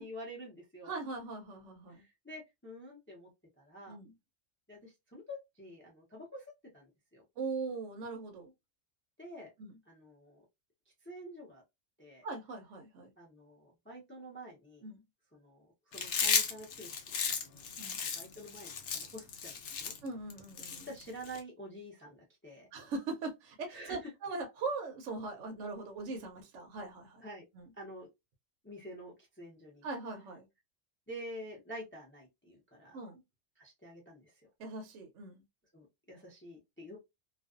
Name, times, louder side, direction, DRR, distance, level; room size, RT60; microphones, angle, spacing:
voice 1, 0.0-0.9 1.9-3.3 3.6-4.0 4.7-6.4 6.7-7.2 9.2-9.5 9.9-10.4 11.0-11.6 12.0-12.2 13.2-14.9 15.3-15.7 15.9-17.7 18.0-19.9 20.9-22.7 23.7-24.1 27.2-27.4 27.8-28.1 28.6-29.9 31.1-33.0 33.6-34.5 35.7-37.0, equal, 15° left, 0.4 m, -48 dB
voice 2, 0.8-2.0 3.9-4.1 7.4-8.5 9.6-9.8 12.2-13.1 14.8-15.0 17.8-18.0 20.0-20.9 22.7-27.3 27.5-27.7 29.8-30.5 32.9-33.2 34.6-35.4, right 3 dB, 70° right, 0.9 m, -40 dB
Chewing mastication, 15.9-21.4, left 6 dB, 65° left, 0.8 m, -34 dB
2.4 x 2.3 x 2.3 m
omnidirectional pair, 1.4 m